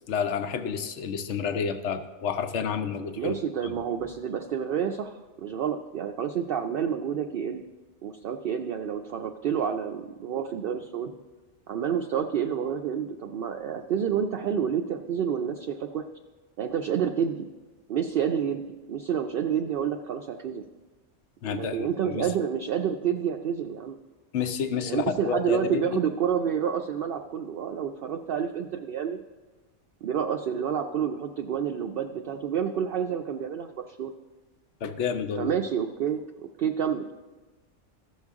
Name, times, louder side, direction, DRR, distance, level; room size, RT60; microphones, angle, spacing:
voice 1, 0.1-3.4 3.6-3.7 21.4-22.3 24.3-26.0 34.8-35.5, left 6 dB, 70° left, 8 dB, 1.0 m, -30 dB
voice 2, 3.2-7.6 8.0-11.2 11.7-16.0 16.6-17.4 17.9-20.6 21.5-24.0 24.9-29.2 30.0-34.1 35.4-36.2 36.6-37.1, right 8 dB, 60° right, 4 dB, 0.6 m, -29 dB
15.0 x 6.4 x 3.6 m, 1.2 s
omnidirectional pair, 1.2 m